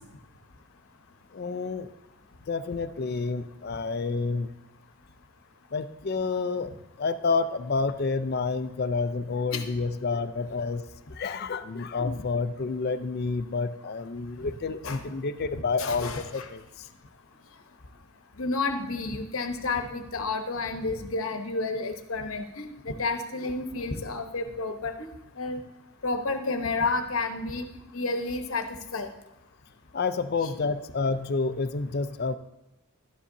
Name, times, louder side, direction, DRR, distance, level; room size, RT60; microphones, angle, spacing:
voice 1, 1.3-1.9 2.5-4.5 5.7-10.8 11.1-16.9 29.9-32.3, left 4 dB, 45° left, 11 dB, 0.5 m, -29 dB
voice 2, 15.8-16.5 18.4-25.1 25.4-25.6 26.0-27.7 27.9-29.1, left 3 dB, 65° left, 6 dB, 0.9 m, -30 dB
12.0 x 10.0 x 2.7 m, 0.93 s
head